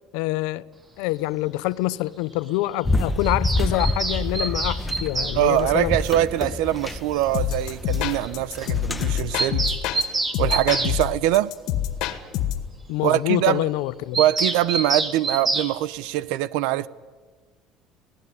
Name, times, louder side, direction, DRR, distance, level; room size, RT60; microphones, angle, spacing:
voice 1, 0.1-0.7 1.0-5.9 12.9-14.2, left 18 dB, 90° left, 0.7 m, -26 dB
sound 1, 2.9-9.4, left 2 dB, 10° left, 1.0 m, -28 dB
Bird vocalization bird call bird song, 3.2-5.4 6.8-6.9 7.2-7.3 7.5-7.6 7.9-8.0 8.2-8.3 8.6-8.7 9.0-11.0 14.1-15.7, right 3 dB, 20° right, 2.1 m, -27 dB
voice 2, 5.3-9.6 10.4-11.5 13.0-13.6 14.2-16.9, right 14 dB, 85° right, 0.8 m, -23 dB
sound 2, 7.3-10.0 10.3-12.7, left 11 dB, 65° left, 2.0 m, -26 dB
25.0 x 17.5 x 9.8 m
cardioid pair, 150°, 0 cm